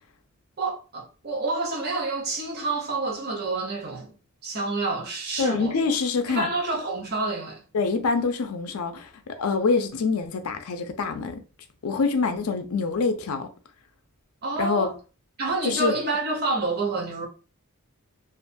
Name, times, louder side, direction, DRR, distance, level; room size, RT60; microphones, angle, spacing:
voice 1, 0.6-4.1 4.4-5.8 6.3-7.6 14.4-14.9 15.4-17.3, right 3 dB, 45° right, 0.7 m, -28 dB
voice 2, 5.4-6.5 7.7-11.4 11.8-13.5 14.6-14.9 15.6-15.9, left 4 dB, 80° left, 0.4 m, -25 dB
2.4 x 2.2 x 2.5 m
head